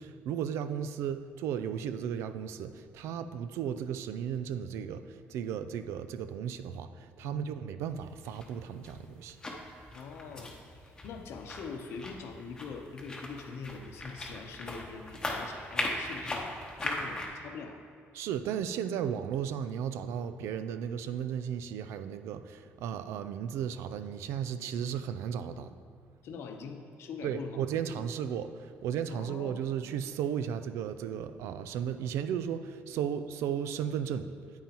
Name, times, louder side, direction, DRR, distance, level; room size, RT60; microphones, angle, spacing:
voice 1, 0.0-9.4 18.1-25.7 27.2-34.3, right 8 dB, 85° right, 11 dB, 0.4 m, -35 dB
sound 1, 8.0-17.3, left 1 dB, 15° left, 0.9 m, -39 dB
voice 2, 9.9-16.5 16.8-17.8 26.2-28.1 29.1-29.6, left 5 dB, 65° left, 5 dB, 0.8 m, -43 dB
9.1 x 8.8 x 3.0 m, 2.3 s
cardioid pair, 145°, 5 cm